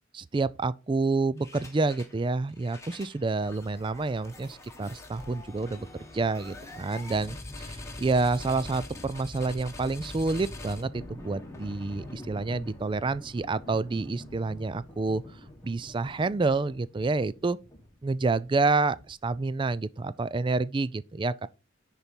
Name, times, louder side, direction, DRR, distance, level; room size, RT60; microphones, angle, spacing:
voice 1, 0.1-5.9 6.1-15.2 15.6-17.6 18.0-21.5, right 3 dB, 25° right, 0.4 m, -28 dB
sound 1, 1.4-2.2 2.5-19.4, left 1 dB, 15° left, 1.4 m, -44 dB
10.5 x 4.2 x 5.2 m
head